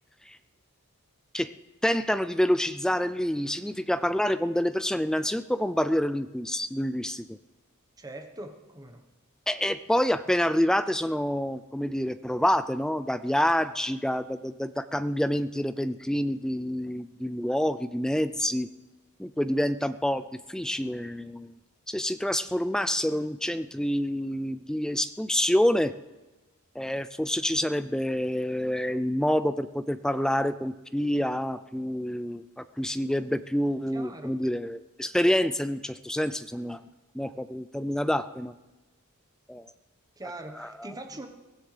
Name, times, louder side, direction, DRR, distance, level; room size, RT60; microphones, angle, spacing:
voice 1, 1.8-7.4 9.5-18.7 19.2-21.5 21.9-25.9 26.8-36.8 37.1-38.5 39.5-39.7 40.5-40.9, equal, 5° left, 12 dB, 0.4 m, -27 dB
voice 2, 8.0-9.0 33.9-34.4 40.2-41.3, right 1 dB, 15° right, 5 dB, 1.2 m, -41 dB
22.5 x 15.5 x 3.4 m, 1.1 s
head